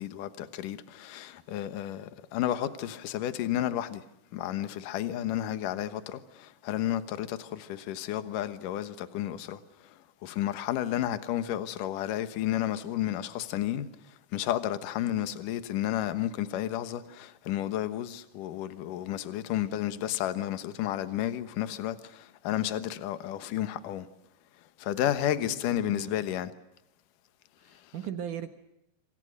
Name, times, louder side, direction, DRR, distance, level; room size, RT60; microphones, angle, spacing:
voice 1, 0.0-4.1 4.3-24.1 24.8-26.5 27.7-27.9, left 12 dB, 70° left, 2.0 m, -32 dB
voice 2, 25.4-26.1 27.6-28.5, right 9 dB, 70° right, 1.9 m, -38 dB
26.5 x 26.5 x 6.6 m
omnidirectional pair, 5.6 m